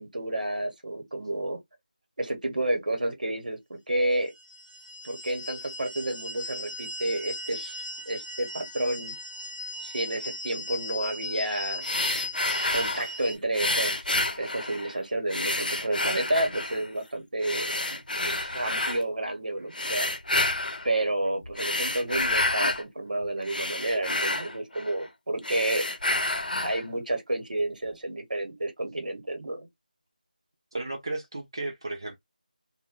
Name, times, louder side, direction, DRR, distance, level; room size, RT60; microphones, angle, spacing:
voice 1, 0.0-1.6 2.2-4.3 5.0-7.8 8.1-9.2 9.8-11.9 12.7-14.0 14.4-18.0 18.2-20.1 20.8-25.8 26.6-29.7, right 1 dB, 65° right, 0.9 m, -30 dB
sound 1, 4.4-13.4, left 1 dB, 50° left, 0.9 m, -38 dB
sound 2, 11.8-13.1 13.5-14.9 15.3-16.9 17.4-19.0 19.7-20.9 21.4-22.8 23.2-25.1 25.4-26.8, left 2 dB, 75° left, 0.7 m, -29 dB
voice 2, 30.7-32.2, right 2 dB, 30° right, 0.4 m, -34 dB
2.2 x 2.1 x 3.7 m
figure-of-eight pair, 175°, 5 cm